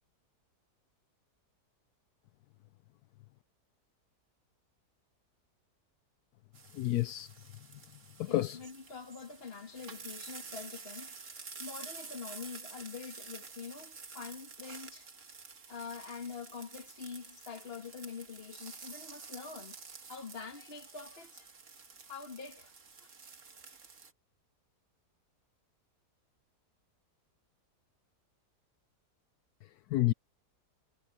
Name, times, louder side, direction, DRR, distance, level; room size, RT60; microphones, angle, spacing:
sound 1, 6.5-24.1, right 5 dB, 50° right, 2.0 m, -50 dB
voice 1, 6.7-7.3 8.2-8.6 29.9-30.1, left 15 dB, 75° left, 1.1 m, -29 dB
voice 2, 8.3-15.1 15.7-19.8 20.1-21.5 22.1-22.7 23.0-23.1, left 5 dB, 35° left, 1.9 m, -45 dB
omnidirectional pair, 1.8 m